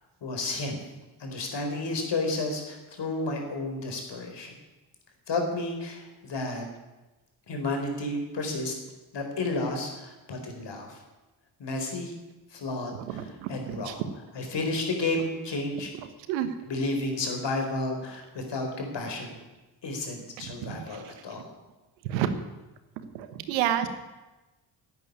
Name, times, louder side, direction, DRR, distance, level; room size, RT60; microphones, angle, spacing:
voice 1, 0.2-0.8 1.2-4.5 5.3-6.6 7.5-8.7 9.1-11.0 11.6-12.1 12.5-14.0 14.3-15.9 16.7-19.3 19.8-21.5, left 2 dB, 55° left, 3 dB, 4.5 m, -32 dB
voice 2, 13.1-13.9 16.3-16.5 20.4-20.8 22.1-22.3 23.1-23.9, right 11 dB, 85° right, 10 dB, 1.3 m, -29 dB
12.0 x 8.9 x 9.7 m, 1.1 s
hypercardioid pair, 45°, 50 cm